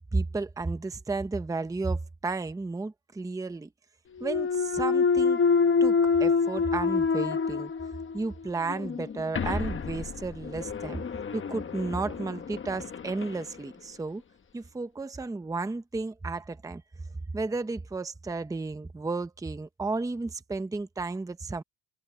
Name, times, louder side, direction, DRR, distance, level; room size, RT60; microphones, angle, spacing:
voice 1, 0.1-3.7 4.2-5.4 5.8-7.7 8.1-11.0 11.3-14.2 14.5-16.8 17.3-21.6, right 3 dB, 10° right, 0.8 m, -33 dB
Thump thud, 4.2-8.2 8.7-13.4, left 5 dB, 30° left, 1.2 m, -27 dB
cardioid pair, 150°, 42 cm